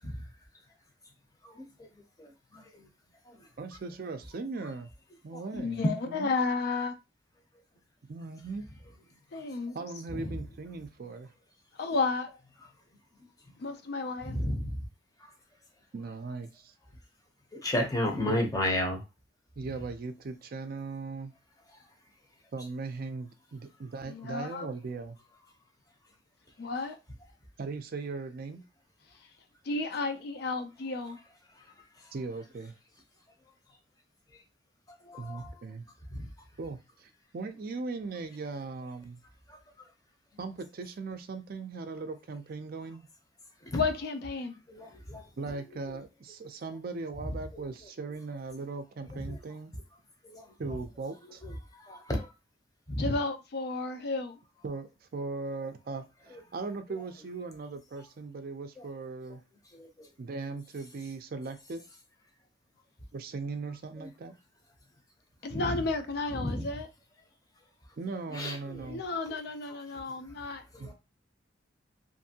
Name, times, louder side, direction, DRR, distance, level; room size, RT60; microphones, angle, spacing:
voice 1, 2.2-2.8 3.3-3.4 5.8-5.9 10.1-10.3 14.3-14.8 15.2-15.3 17.5-19.0 35.0-35.5 36.1-36.3 39.5-39.6 43.7-43.8 44.7-45.2 47.5-47.6 49.1-49.4 50.2-50.5 51.4-51.5 51.8-52.3 52.9-53.1 56.3-56.4 59.7-60.1 65.5-65.8 66.3-66.6 68.3-68.9 70.7-70.9, left 1 dB, 20° left, 0.6 m, -33 dB
voice 2, 3.6-4.9 5.2-6.3 8.1-8.7 9.7-11.3 15.9-16.7 18.3-18.4 19.6-21.3 22.5-25.2 27.6-28.6 32.1-32.7 35.2-35.9 36.6-39.2 40.4-43.1 45.4-49.7 50.6-51.4 54.6-59.4 60.2-61.8 63.1-64.3 68.0-69.0 70.8-70.9, right 3 dB, 50° right, 0.4 m, -39 dB
voice 3, 5.5-6.9 9.3-9.8 11.8-12.3 13.6-14.3 24.1-24.7 26.6-27.0 29.6-31.2 43.7-44.6 53.0-54.4 65.4-66.9 68.9-70.6, left 3 dB, 60° left, 0.4 m, -32 dB
2.6 x 2.6 x 2.7 m
head